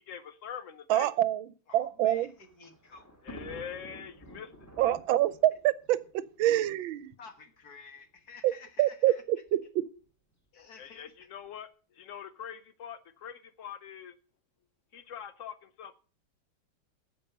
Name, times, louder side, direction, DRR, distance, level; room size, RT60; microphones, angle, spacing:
voice 1, 0.0-1.1 3.2-4.5 10.8-14.1 14.9-15.9, left 8 dB, 80° left, 0.7 m, -43 dB
voice 2, 0.9-1.4 1.7-2.3 4.8-7.1 8.4-8.5 8.8-9.9, right 13 dB, 75° right, 1.4 m, -26 dB
voice 3, 1.7-3.1 7.2-9.2 10.5-11.1, left 5 dB, 50° left, 1.8 m, -51 dB
Thunder, 1.8-7.1 8.0-8.1 8.3-8.4 9.5-9.8, equal, 10° left, 2.1 m, -50 dB
10.5 x 8.2 x 6.6 m
omnidirectional pair, 2.2 m